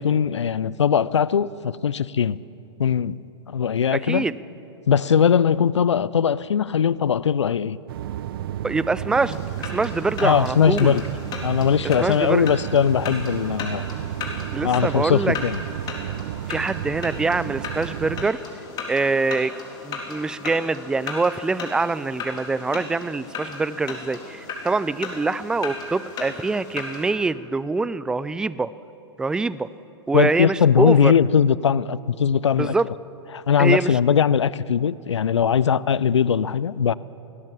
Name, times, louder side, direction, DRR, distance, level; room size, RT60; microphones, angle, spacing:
voice 1, 0.0-2.4 2.8-3.2 3.5-4.2 4.9-7.8 10.2-11.0 11.4-13.8 14.6-15.6 30.1-32.7 33.3-36.9, left 7 dB, 75° left, 20 dB, 0.6 m, -20 dB
voice 2, 3.9-4.4 8.6-11.0 11.8-12.5 14.5-15.4 16.5-18.4 18.9-19.5 19.8-28.7 29.2-29.7 30.1-31.1 32.6-32.9 33.6-34.0, right 3 dB, 5° right, 18 dB, 0.4 m, -24 dB
sound 1, 7.9-18.3, right 12 dB, 50° right, 0.7 m, -32 dB
sound 2, 9.1-27.1, left 4 dB, 25° left, 3.8 m, -36 dB
21.0 x 17.5 x 7.4 m, 2.8 s
figure-of-eight pair, 110°, 15 cm